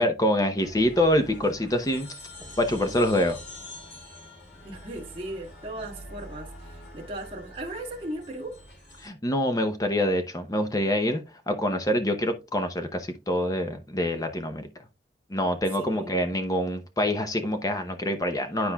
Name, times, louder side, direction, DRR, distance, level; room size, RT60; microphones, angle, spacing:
voice 1, 0.0-2.1 2.6-3.4 9.0-14.7 15.3-18.7, left 1 dB, 20° left, 0.8 m, -25 dB
sound 1, 0.6-9.1, left 1 dB, 75° left, 3.0 m, -45 dB
voice 2, 4.6-8.6 15.8-16.2, right 1 dB, 30° right, 1.7 m, -37 dB
11.5 x 4.3 x 2.3 m
head